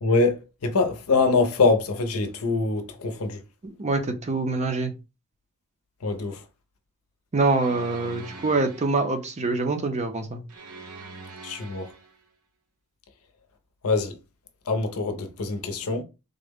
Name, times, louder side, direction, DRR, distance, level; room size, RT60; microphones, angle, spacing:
voice 1, 0.0-3.4 6.0-6.4 11.4-11.9 13.8-14.1 14.7-16.0, left 3 dB, 75° left, 0.6 m, -24 dB
voice 2, 3.6-4.9 7.3-10.4, right 3 dB, 30° right, 0.5 m, -25 dB
sound 1, 7.4-9.2 10.5-12.2, right 3 dB, 80° right, 0.8 m, -43 dB
3.7 x 2.1 x 3.4 m
head